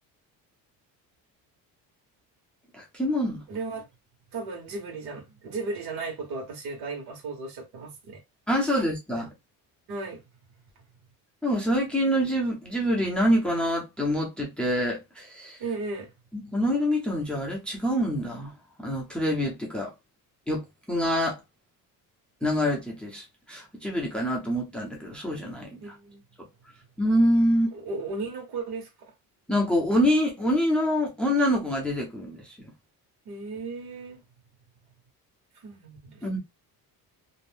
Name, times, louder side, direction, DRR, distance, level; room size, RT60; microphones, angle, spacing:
voice 1, 2.7-3.4 8.5-9.3 11.4-15.6 16.5-18.5 18.8-19.9 20.5-20.6 20.9-21.4 22.4-25.7 27.0-27.7 29.5-32.4 36.2-36.4, equal, 5° left, 0.5 m, -25 dB
voice 2, 3.5-3.9 4.3-8.2 9.2-9.3 9.9-10.2 15.6-16.1 25.8-26.2 27.7-29.1 33.2-34.2 35.6-36.3, right 3 dB, 70° right, 1.3 m, -35 dB
2.6 x 2.0 x 3.4 m
cardioid pair, 165°, 39 cm